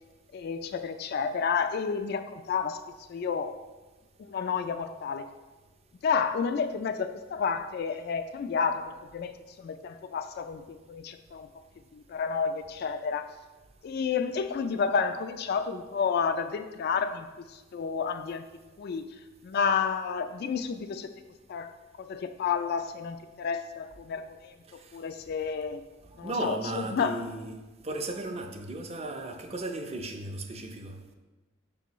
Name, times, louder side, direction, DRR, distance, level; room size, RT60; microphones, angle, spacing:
voice 1, 0.3-2.8 3.1-3.5 4.2-5.3 6.0-11.5 11.9-13.3 13.8-18.4 18.8-19.1 19.4-21.1 21.5-24.5 24.9-25.8 26.2-26.6 26.9-27.2, left 6 dB, 55° left, 8 dB, 0.3 m, -30 dB
voice 2, 26.2-31.0, right 2 dB, 30° right, 5 dB, 0.6 m, -35 dB
6.8 x 6.2 x 3.0 m, 1.2 s
head